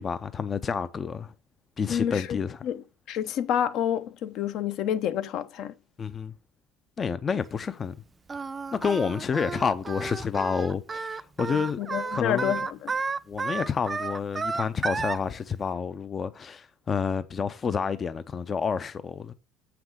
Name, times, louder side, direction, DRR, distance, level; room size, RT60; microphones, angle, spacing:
voice 1, 0.0-1.3 1.8-2.6 6.0-6.3 7.0-7.9 8.7-11.8 12.1-12.6 13.3-19.3, left 6 dB, 30° left, 0.5 m, -29 dB
voice 2, 1.9-5.8 11.5-13.0, left 9 dB, 65° left, 0.7 m, -29 dB
Singing, 8.3-15.2, right 4 dB, 25° right, 0.5 m, -32 dB
7.1 x 6.0 x 4.7 m
supercardioid pair, 105°, 0 cm